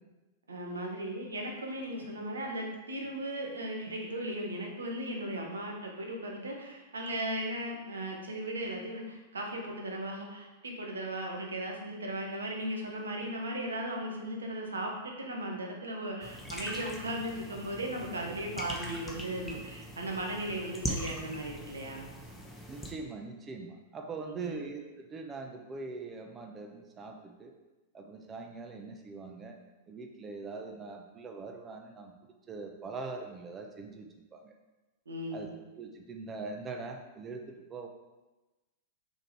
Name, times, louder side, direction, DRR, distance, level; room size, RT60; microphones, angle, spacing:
voice 1, 0.5-22.0 24.2-24.6 35.1-35.5, right 1 dB, 85° right, 1 dB, 1.2 m, -37 dB
sound 1, 16.2-22.9, equal, 10° left, 1.0 m, -41 dB
voice 2, 22.7-27.5 27.9-29.6 29.9-32.1 32.5-34.5 35.3-35.5 35.8-37.9, right 3 dB, 25° right, 3 dB, 0.8 m, -42 dB
5.0 x 4.5 x 4.7 m, 1.1 s
hypercardioid pair, 105°, 0 cm